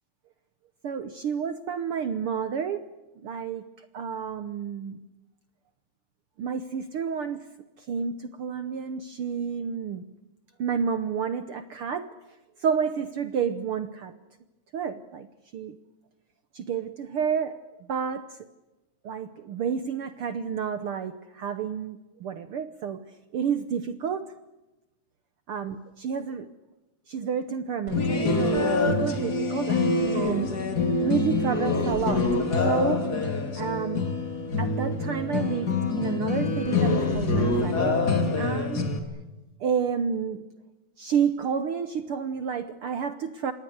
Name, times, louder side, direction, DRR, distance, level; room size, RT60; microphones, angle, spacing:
voice 1, 0.8-2.8 3.2-3.6 3.9-5.0 6.4-7.5 7.8-10.0 10.6-12.1 12.6-14.1 14.7-15.3 15.5-15.8 16.5-17.6 17.9-18.4 19.0-23.0 23.3-24.3 25.5-26.5 27.1-32.3 32.6-33.1 33.5-34.1 34.6-38.0 38.4-38.9 39.6-40.4 41.0-43.5, right 7 dB, 65° right, 11 dB, 1.4 m, -30 dB
sound 1, 27.9-39.0, left 3 dB, 35° left, 2.7 m, -25 dB
27.0 x 20.0 x 7.9 m, 1.1 s
omnidirectional pair, 3.6 m